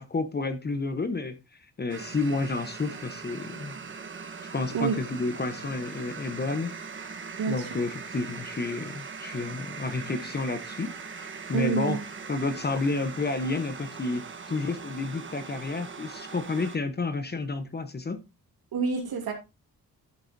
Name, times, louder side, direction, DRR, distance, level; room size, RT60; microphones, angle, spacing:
voice 1, 0.0-3.8 4.5-7.1 7.5-12.0 12.3-18.2, left 3 dB, 25° left, 1.0 m, -31 dB
sound 1, 1.9-16.8, right 5 dB, 30° right, 1.2 m, -41 dB
voice 2, 7.4-7.7 11.5-12.0 18.7-19.3, right 5 dB, 75° right, 2.7 m, -27 dB
12.0 x 7.9 x 2.7 m
wide cardioid pair, 150°, 37 cm